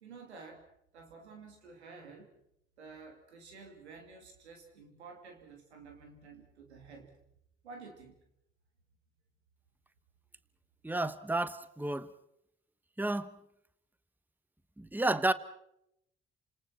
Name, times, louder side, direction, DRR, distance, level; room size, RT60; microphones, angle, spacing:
voice 1, 0.0-0.6 0.9-2.3 2.8-7.1 7.6-8.1, right 4 dB, 90° right, 2.7 m, -51 dB
voice 2, 10.8-12.1 13.0-13.3 14.8-15.3, right 2 dB, 5° right, 1.2 m, -31 dB
29.5 x 27.0 x 4.4 m
hypercardioid pair, 45°, 32 cm